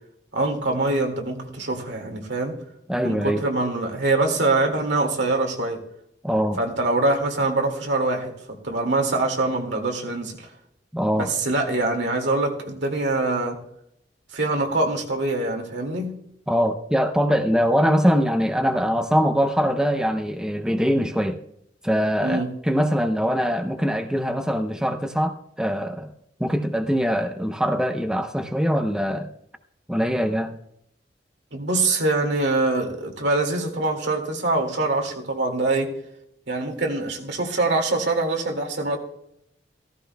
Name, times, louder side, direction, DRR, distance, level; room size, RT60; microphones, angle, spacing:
voice 1, 0.3-2.6 3.0-5.8 6.6-10.5 11.1-13.6 14.3-16.2 22.2-22.5 31.5-35.9 36.5-39.0, right 2 dB, 75° right, 2.1 m, -24 dB
voice 2, 2.9-3.4 6.2-6.6 10.9-11.3 16.5-21.4 21.8-26.1 26.4-29.3 29.9-30.5, equal, 5° right, 0.6 m, -22 dB
15.5 x 15.0 x 2.2 m
head